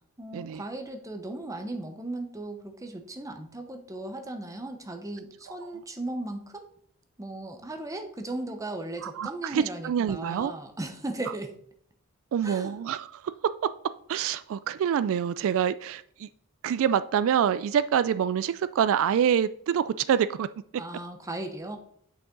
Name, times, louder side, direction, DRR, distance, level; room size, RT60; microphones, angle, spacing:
voice 1, 0.2-6.7 7.2-11.6 12.4-12.8 20.8-21.8, right 2 dB, 15° right, 5 dB, 0.9 m, -37 dB
voice 2, 9.0-10.5 12.3-13.2 14.1-16.3 16.6-20.5, right 8 dB, 65° right, 15 dB, 0.3 m, -26 dB
8.3 x 6.1 x 3.9 m, 0.65 s
head